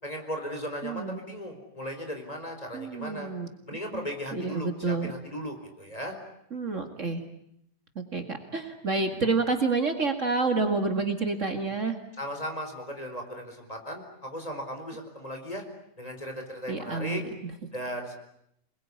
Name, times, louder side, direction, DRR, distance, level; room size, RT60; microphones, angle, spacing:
voice 1, 0.0-3.3 3.7-6.1 12.2-15.6 16.0-17.2 17.7-18.2, equal, 20° left, 4 dB, 4.6 m, -36 dB
voice 2, 0.8-1.2 2.7-3.5 3.9-4.1 4.3-5.1 6.5-7.2 8.0-11.9 16.7-17.5, right 3 dB, 45° right, 6 dB, 2.4 m, -29 dB
27.5 x 21.5 x 9.7 m, 0.75 s
omnidirectional pair, 1.8 m